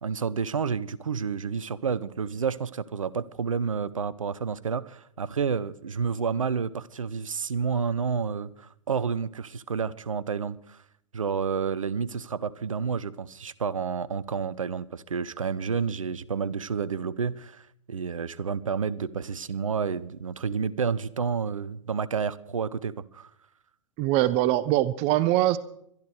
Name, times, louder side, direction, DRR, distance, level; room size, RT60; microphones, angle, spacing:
voice 1, 0.0-10.6 11.1-17.6 17.9-23.3, right 6 dB, 80° right, 0.8 m, -30 dB
voice 2, 24.0-25.6, right 14 dB, 35° right, 0.7 m, -22 dB
22.5 x 12.5 x 4.8 m
figure-of-eight pair, 105°, 17 cm